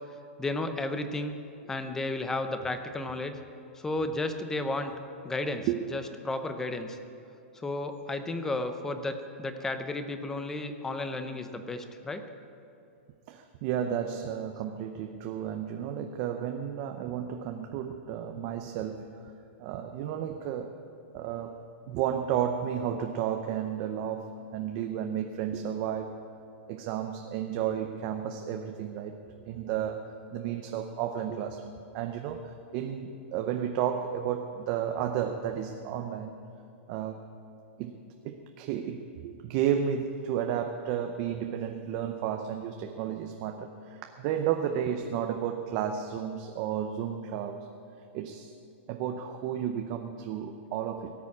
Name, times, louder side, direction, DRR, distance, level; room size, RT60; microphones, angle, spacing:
voice 1, 0.4-1.4 1.7-3.4 3.7-4.9 5.2-7.0 7.5-12.2, left 2 dB, 5° left, 8 dB, 0.6 m, -33 dB
voice 2, 13.3-19.3 19.6-20.7 21.1-21.6 21.9-26.1 26.7-30.0 30.3-36.3 36.9-37.3 37.8-38.0 38.2-47.7 48.1-48.5 48.9-51.1, right 9 dB, 30° right, 5 dB, 0.7 m, -32 dB
18.0 x 7.0 x 8.5 m, 2.7 s
supercardioid pair, 170°, 7 cm